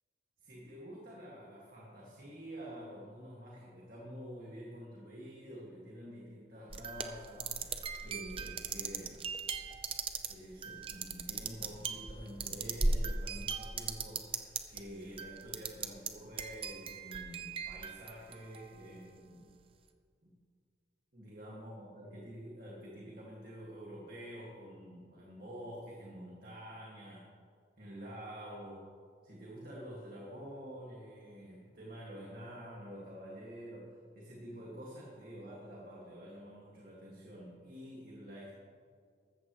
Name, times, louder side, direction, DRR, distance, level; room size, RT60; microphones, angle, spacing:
voice 1, 0.4-9.3 10.3-19.5 20.2-20.3 21.1-27.3 27.8-28.9 29.2-38.6, equal, 55° right, -5 dB, 2.1 m, -48 dB
sound 1, 6.7-14.8 15.2-16.1 16.4-18.8, right 4 dB, 30° right, 0.7 m, -37 dB
14.0 x 14.0 x 3.1 m, 2.1 s
head